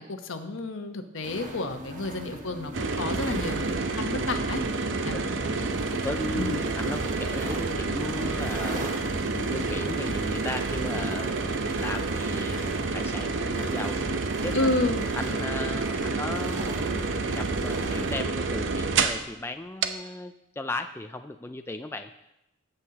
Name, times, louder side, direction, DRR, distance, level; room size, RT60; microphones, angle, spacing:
voice 1, 0.0-4.6 5.0-5.2 6.3-6.7 14.5-15.1, left 2 dB, 70° left, 6 dB, 1.0 m, -30 dB
sound 1, 1.2-18.2, equal, 40° right, 1.3 m, -41 dB
sound 2, 2.7-19.3 19.8-19.9, right 3 dB, 65° right, 0.7 m, -29 dB
voice 2, 5.9-8.8 9.3-14.7 15.1-22.1, left 2 dB, 10° left, 7 dB, 0.3 m, -36 dB
18.5 x 8.0 x 2.9 m, 0.87 s
head